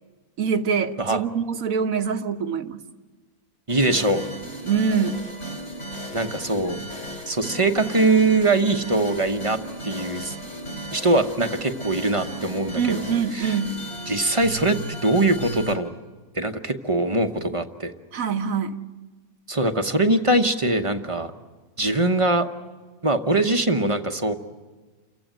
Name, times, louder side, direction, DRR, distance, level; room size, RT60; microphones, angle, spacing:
voice 1, 0.4-2.8 4.6-5.2 12.8-13.8 18.1-18.8, right 6 dB, 65° right, 9 dB, 1.4 m, -24 dB
sound 1, 3.7-15.8, right 1 dB, 50° left, 3.8 m, -35 dB
voice 2, 3.7-4.2 6.1-6.8 7.3-10.3 10.9-13.0 13.3-13.5 14.1-15.9 16.3-17.9 19.5-21.3 21.8-22.5 23.0-24.3, right 2 dB, 25° right, 6 dB, 0.9 m, -22 dB
29.0 x 15.5 x 9.1 m, 1.3 s
omnidirectional pair, 1.6 m